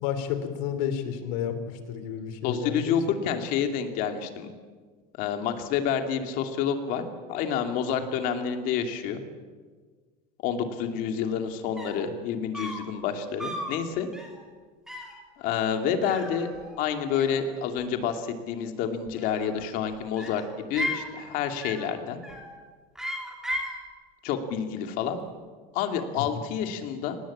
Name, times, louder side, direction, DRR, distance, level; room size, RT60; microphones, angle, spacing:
voice 1, 0.0-3.0 26.2-26.3, left 8 dB, 65° left, 10 dB, 3.0 m, -31 dB
voice 2, 2.4-4.5 5.2-7.0 7.3-9.2 10.4-14.1 15.4-16.5 16.8-22.2 24.2-25.2 25.7-27.2, left 7 dB, 50° left, 6 dB, 2.6 m, -28 dB
sound 1, 11.5-11.6 11.8-12.1 12.5-12.9 13.4-13.8 14.1-14.4 14.9-15.2 16.0-16.9 17.1-17.8 19.1-19.7 20.2-21.1 21.6-21.9 22.2-22.6 23.0-23.8, equal, 5° right, 3.1 m, -36 dB
25.0 x 19.0 x 8.7 m, 1.5 s
cardioid pair, 175°, 19 cm